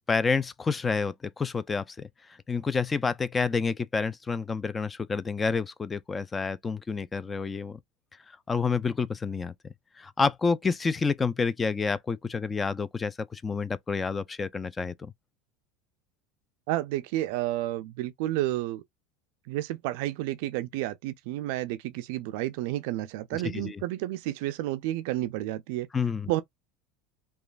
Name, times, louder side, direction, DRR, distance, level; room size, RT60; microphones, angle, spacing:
voice 1, 0.1-2.1 2.5-7.8 8.5-9.5 10.0-15.1 23.3-23.8 25.9-26.3, left 5 dB, 20° left, 0.3 m, -29 dB
voice 2, 16.7-18.8 19.5-25.9 26.3-26.4, right 15 dB, 70° right, 0.3 m, -31 dB
3.0 x 2.3 x 2.4 m
supercardioid pair, 115°, 0 cm